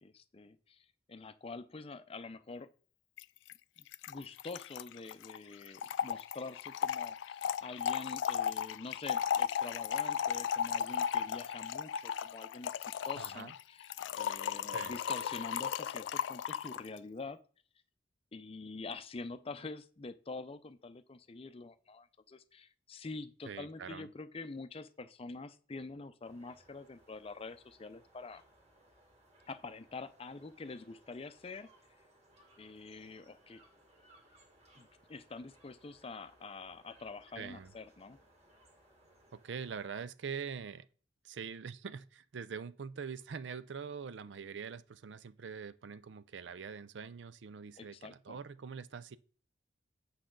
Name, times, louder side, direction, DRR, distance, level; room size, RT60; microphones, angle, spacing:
voice 1, 0.0-2.7 3.8-13.9 14.2-17.4 18.3-28.4 29.5-31.7 32.6-33.6 34.8-38.2 47.8-48.4, left 3 dB, 30° left, 0.5 m, -46 dB
Trickle dribble / Fill (with liquid), 3.2-3.3 3.5-3.6 3.8-16.9, left 8 dB, 90° left, 0.3 m, -35 dB
voice 2, 13.2-13.5 14.7-14.9 23.5-24.1 37.4-37.7 39.3-40.9 41.2-49.2, right 6 dB, 75° right, 0.5 m, -44 dB
sound 1, 26.2-39.9, right 1 dB, 35° right, 2.0 m, -65 dB
8.6 x 5.6 x 3.8 m
head